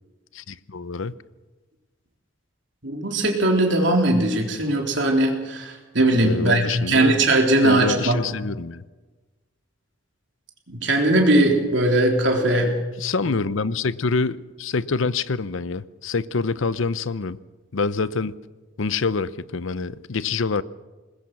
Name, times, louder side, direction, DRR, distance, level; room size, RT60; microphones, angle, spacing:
voice 1, 0.3-1.1 6.2-7.2 7.6-8.8 12.6-12.7 13.0-17.4 17.7-18.3 18.8-20.6, left 4 dB, 75° left, 0.7 m, -26 dB
voice 2, 2.8-8.2 10.7-12.7, right 1 dB, 60° right, 3.9 m, -20 dB
22.0 x 20.5 x 6.2 m
head